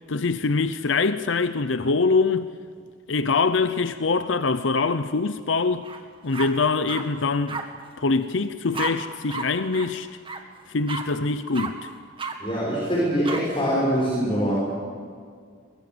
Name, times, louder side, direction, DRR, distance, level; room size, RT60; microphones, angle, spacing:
voice 1, 0.1-2.5 3.1-5.9 6.2-7.6 8.0-10.1 10.7-11.9, left 4 dB, 80° left, 0.8 m, -24 dB
sound 1, 5.8-6.0 6.3-7.0 7.5-7.6 8.7-8.9 9.3-9.5 9.7-9.9 10.2-10.4 10.9-11.0 11.5-11.7 12.2-12.3 13.2-13.4, right 4 dB, 30° right, 1.9 m, -31 dB
voice 2, 12.4-14.5, equal, 30° left, 6.1 m, -23 dB
23.5 x 22.0 x 8.0 m
head